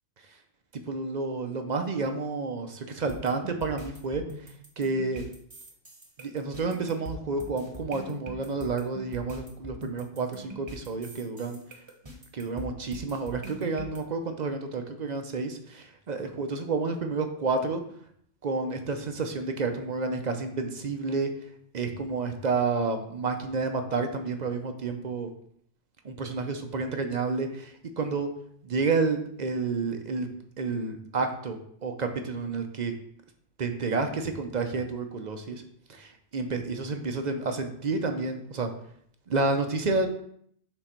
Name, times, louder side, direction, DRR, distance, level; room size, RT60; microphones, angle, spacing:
voice 1, 0.9-4.2 4.8-5.2 6.2-11.6 12.3-17.8 18.4-21.3 21.7-25.3 26.0-28.3 28.6-30.3 30.6-32.9 33.6-35.6 35.9-38.7 39.3-40.1, right 4 dB, 45° right, 6 dB, 0.6 m, -30 dB
sound 1, 3.1-14.0, equal, 25° right, 1.0 m, -43 dB
6.2 x 3.9 x 4.4 m, 0.66 s
omnidirectional pair, 1.3 m